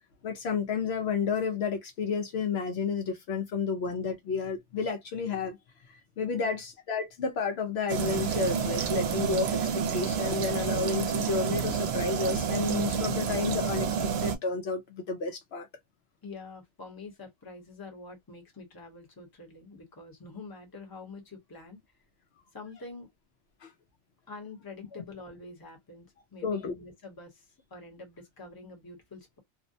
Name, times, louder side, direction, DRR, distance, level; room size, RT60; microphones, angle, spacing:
voice 1, 0.2-5.6 5.9-15.7 23.6-23.7 26.4-26.7, left 5 dB, 70° left, 0.8 m, -31 dB
sound 1, 7.9-14.4, right 7 dB, 70° right, 0.8 m, -29 dB
voice 2, 16.2-21.8 22.5-23.1 24.3-26.1 26.3-29.4, left 3 dB, 20° left, 0.8 m, -46 dB
2.5 x 2.1 x 2.6 m
omnidirectional pair, 1.2 m